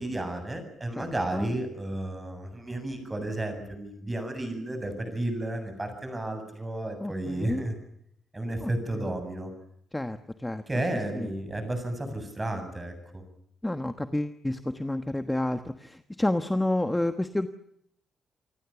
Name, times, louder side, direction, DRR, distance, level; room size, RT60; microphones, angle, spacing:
voice 1, 0.0-7.7 8.3-9.5 10.7-13.2, right 1 dB, 15° right, 7 dB, 7.8 m, -32 dB
voice 2, 7.0-7.6 8.6-9.1 9.9-10.6 11.1-11.3 13.6-17.5, left 1 dB, 10° left, 9 dB, 1.2 m, -30 dB
28.5 x 24.5 x 7.1 m, 0.71 s
cardioid pair, 160°, 0 cm